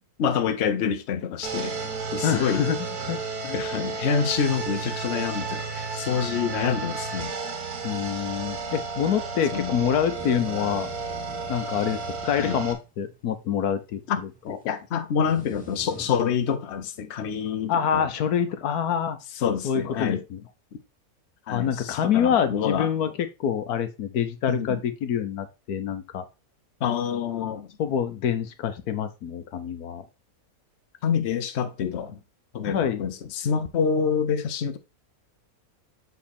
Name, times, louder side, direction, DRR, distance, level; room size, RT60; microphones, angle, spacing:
voice 1, 0.2-1.7 2.1-2.6 3.5-7.3 9.5-9.7 12.4-12.6 14.1-18.1 19.4-20.2 21.5-22.9 24.5-24.8 26.8-27.7 31.0-32.2 32.5-34.8, left 7 dB, 55° left, 1.0 m, -27 dB
sound 1, 1.4-12.7, right 4 dB, 85° right, 1.8 m, -32 dB
voice 2, 2.2-3.6 7.8-10.9 11.5-12.0 12.2-14.0 14.5-14.6 17.7-19.2 19.6-20.4 21.5-23.1 23.4-26.2 27.8-30.0 32.7-33.0, left 8 dB, 80° left, 1.3 m, -26 dB
sound 2, 9.9-16.5, equal, 5° left, 1.3 m, -48 dB
7.3 x 4.1 x 4.2 m
omnidirectional pair, 1.6 m